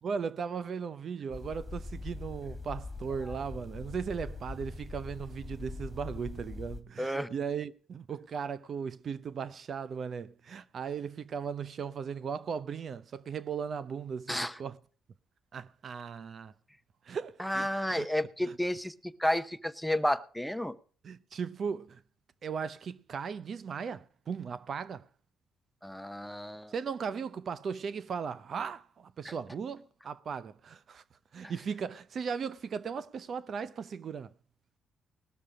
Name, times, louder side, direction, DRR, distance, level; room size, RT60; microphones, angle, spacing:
voice 1, 0.0-14.8 15.5-16.5 17.1-18.1 18.4-18.6 21.0-22.0 22.4-25.0 26.7-31.0 31.3-34.3, right 6 dB, 55° right, 0.6 m, -37 dB
sound 1, 1.3-6.8, left 3 dB, 15° left, 2.0 m, -42 dB
voice 2, 7.0-7.3 14.3-14.6 17.4-20.8 25.8-26.7 29.2-29.3, left 1 dB, ahead, 0.8 m, -31 dB
19.5 x 6.8 x 5.0 m
cardioid pair, 90°, 0 cm